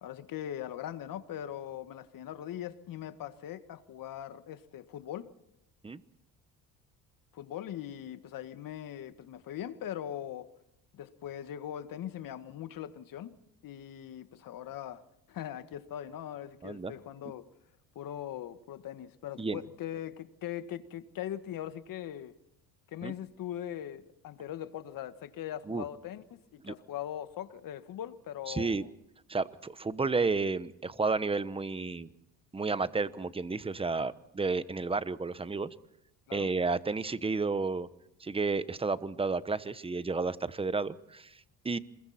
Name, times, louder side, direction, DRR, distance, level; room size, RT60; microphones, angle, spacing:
voice 1, 0.0-5.3 7.3-10.5 10.9-13.4 13.6-17.5 18.0-22.3 22.9-28.9 36.3-36.5, left 11 dB, 55° left, 1.8 m, -41 dB
voice 2, 28.5-28.8 29.3-32.1 32.5-35.7 36.3-37.9 38.2-41.8, right 4 dB, 15° right, 1.1 m, -31 dB
27.5 x 21.5 x 4.4 m
supercardioid pair, 95°, 39 cm